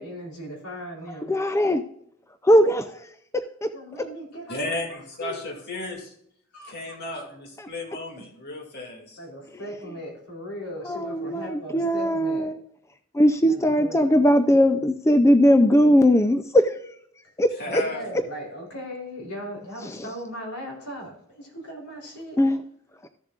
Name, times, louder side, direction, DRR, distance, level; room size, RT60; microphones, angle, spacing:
voice 1, 0.0-1.3 3.7-4.8 5.2-5.4 6.5-7.0 9.2-12.5 13.5-14.1 17.6-22.4, equal, 85° left, -1 dB, 3.6 m, -38 dB
voice 2, 1.3-1.8 2.4-3.0 3.6-3.7 10.9-12.6 13.1-16.7 17.4-17.5 22.4-22.6, equal, 15° left, 9 dB, 0.4 m, -19 dB
voice 3, 4.5-6.1 6.6-9.2 17.6-18.1, left 2 dB, 50° left, 1 dB, 2.4 m, -34 dB
14.5 x 7.2 x 2.4 m, 0.69 s
head